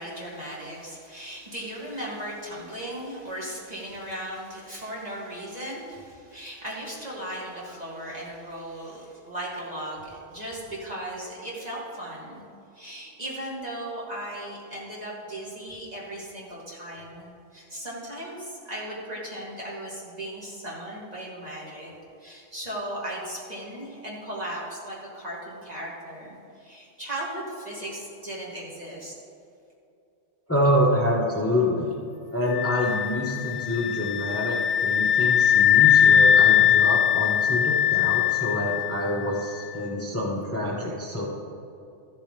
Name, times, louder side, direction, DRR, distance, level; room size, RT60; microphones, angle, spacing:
voice 1, 0.0-12.4 12.7-21.9 22.2-29.1, right 1 dB, 35° right, -6 dB, 2.5 m, -37 dB
voice 2, 30.5-31.9 32.3-41.2, left 1 dB, 10° left, -4 dB, 1.1 m, -26 dB
sound 1, 32.5-39.3, left 9 dB, 60° left, 0.8 m, -21 dB
14.5 x 7.3 x 3.3 m, 2.6 s
omnidirectional pair, 1.3 m